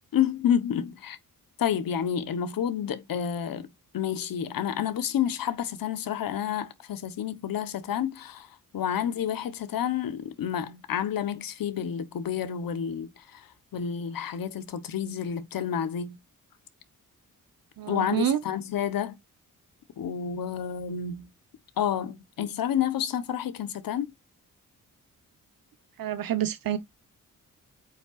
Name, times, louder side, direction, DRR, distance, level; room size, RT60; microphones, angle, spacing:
voice 1, 0.1-1.2 1.6-3.7 3.9-8.5 8.7-13.5 13.7-16.2 17.9-19.2 20.0-21.3 21.8-24.1, left 9 dB, 85° left, 1.1 m, -29 dB
voice 2, 17.8-18.4 26.0-26.8, right 11 dB, 85° right, 1.1 m, -27 dB
8.6 x 5.6 x 2.5 m
cardioid pair, 85°, 33 cm